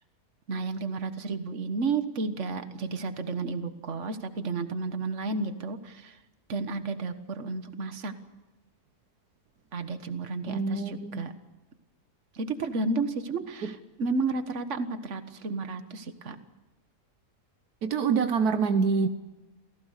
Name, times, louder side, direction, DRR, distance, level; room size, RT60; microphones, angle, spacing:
voice 1, 0.5-6.2 6.5-8.1 9.7-11.3 12.4-16.4, right 3 dB, 50° right, 9 dB, 1.7 m, -32 dB
voice 2, 10.5-11.2 13.6-13.7 17.8-19.1, right 5 dB, 75° right, 9 dB, 1.5 m, -26 dB
28.0 x 17.0 x 6.6 m, 1.1 s
omnidirectional pair, 1.7 m